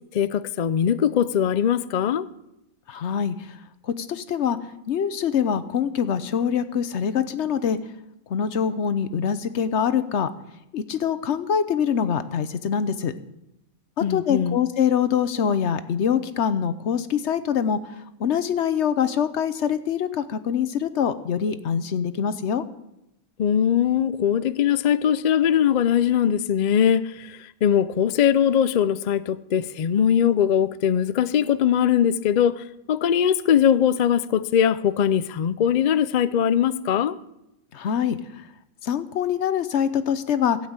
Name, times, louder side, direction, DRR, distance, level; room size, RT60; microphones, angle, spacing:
voice 1, 0.1-2.3 14.0-14.6 23.4-37.2, left 9 dB, 80° left, 0.4 m, -21 dB
voice 2, 2.9-3.3 4.0-4.6 4.9-7.8 8.3-10.3 10.7-13.1 14.1-17.8 18.2-22.6 37.7-38.2 38.8-40.6, left 8 dB, 60° left, 1.0 m, -24 dB
16.0 x 5.8 x 8.8 m
omnidirectional pair, 1.4 m